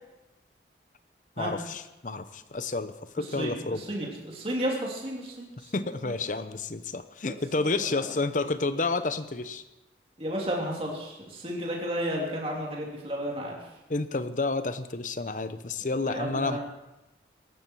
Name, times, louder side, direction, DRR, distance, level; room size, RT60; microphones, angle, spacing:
voice 1, 1.4-3.8 5.7-9.6 13.9-16.6, left 3 dB, 45° left, 12 dB, 0.8 m, -30 dB
voice 2, 3.2-6.1 7.2-7.4 7.9-8.0 10.2-13.5 16.0-16.6, equal, 30° right, -2 dB, 3.1 m, -33 dB
18.0 x 13.5 x 4.6 m, 0.99 s
head